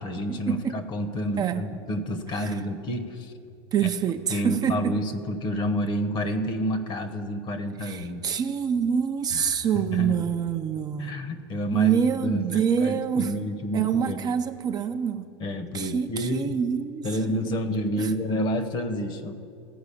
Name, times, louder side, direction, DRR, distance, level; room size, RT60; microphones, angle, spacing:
voice 1, 0.0-3.3 3.8-3.9 4.3-8.2 9.3-9.6 9.9-10.4 11.0-14.2 15.4-16.6 17.0-19.3, equal, 35° left, 10 dB, 0.9 m, -29 dB
voice 2, 2.3-2.6 3.7-4.9 7.8-11.1 11.7-13.3 13.7-15.3 15.7-17.6 18.0-18.1, right 8 dB, 30° right, 7 dB, 0.5 m, -26 dB
14.5 x 4.8 x 8.4 m, 2.5 s
supercardioid pair, 120°, 14 cm